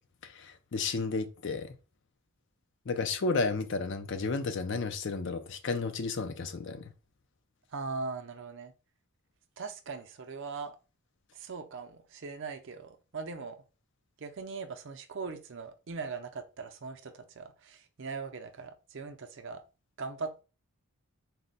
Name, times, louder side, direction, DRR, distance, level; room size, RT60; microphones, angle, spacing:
voice 1, 0.2-1.7 2.9-6.8, left 4 dB, 55° left, 0.5 m, -32 dB
voice 2, 7.7-8.7 9.6-10.8 11.3-13.6 14.2-19.6 20.0-20.4, right 4 dB, 55° right, 0.5 m, -40 dB
4.1 x 2.2 x 4.0 m
head